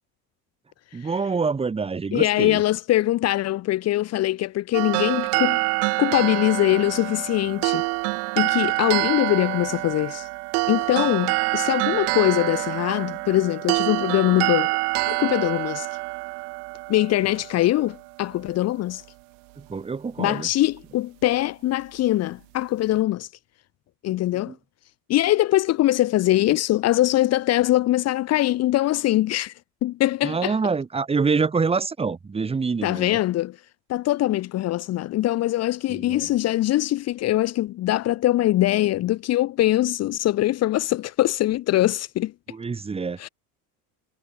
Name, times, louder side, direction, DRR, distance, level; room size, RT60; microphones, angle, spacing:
voice 1, 0.9-2.6 19.6-20.5 24.5-24.6 30.2-33.2 35.9-36.3 42.5-43.2, right 4 dB, 15° right, 4.4 m, -26 dB
voice 2, 2.1-5.6 6.0-7.8 8.3-10.3 10.7-14.8 15.1-15.9 16.9-19.0 20.2-23.3 24.0-24.5 25.1-29.5 29.8-30.6 32.8-33.6 33.9-42.3 43.2-43.3, left 15 dB, 35° left, 1.7 m, -22 dB
sound 1, 4.7-18.0, right 28 dB, 80° right, 1.9 m, -26 dB
cardioid pair, 170°, 44 cm